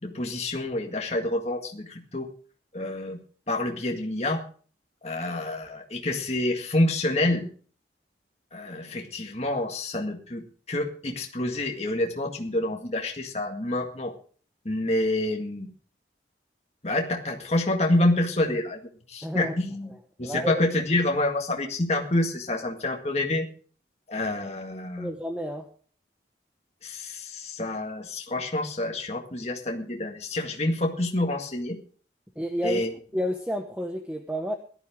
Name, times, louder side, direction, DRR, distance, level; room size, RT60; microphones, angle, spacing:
voice 1, 0.0-2.3 2.7-3.2 3.5-4.4 5.0-7.5 8.5-14.1 14.7-15.7 16.8-19.9 20.2-23.5 24.1-25.1 26.8-31.8 32.6-32.9, left 1 dB, 35° left, 2 dB, 1.9 m, -27 dB
voice 2, 19.2-19.6 19.9-20.6 25.0-25.7 32.4-34.5, equal, 5° right, 4 dB, 1.0 m, -31 dB
18.0 x 12.0 x 3.6 m, 0.43 s
head